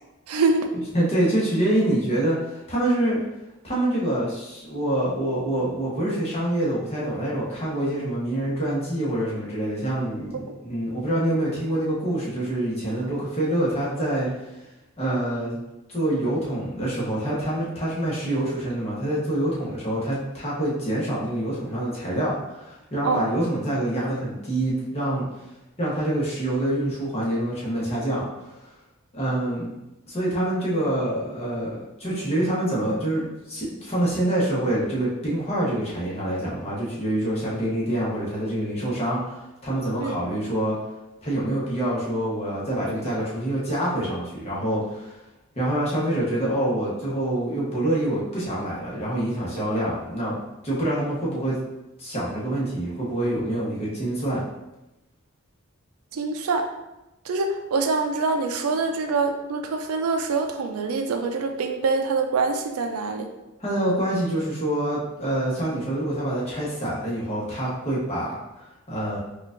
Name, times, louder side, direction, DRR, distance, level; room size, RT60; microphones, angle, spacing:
voice 1, 0.3-0.7 23.0-23.3 40.0-40.2 56.1-56.7 57.3-63.3, right 4 dB, 80° right, 6 dB, 0.4 m, -25 dB
voice 2, 0.9-3.2 3.6-14.3 15.0-15.6 15.9-25.2 25.8-28.2 28.5-28.7 29.1-29.7 30.1-40.7 41.2-45.2 45.5-50.4 50.6-51.6 52.0-54.5 63.6-69.2, right 1 dB, 30° left, -6 dB, 1.0 m, -26 dB
4.5 x 2.4 x 2.5 m, 0.97 s
head